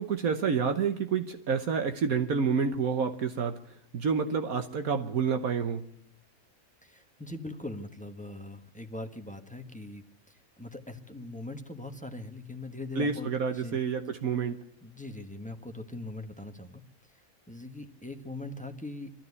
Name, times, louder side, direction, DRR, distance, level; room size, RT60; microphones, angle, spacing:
voice 1, 0.0-3.6 3.9-5.8 13.0-14.6, right 6 dB, 70° right, 7 dB, 1.4 m, -28 dB
voice 2, 6.8-13.3 13.5-13.8 14.8-16.8 17.5-19.1, left 2 dB, 5° left, 6 dB, 1.2 m, -41 dB
21.5 x 13.5 x 9.6 m, 0.76 s
omnidirectional pair, 1.6 m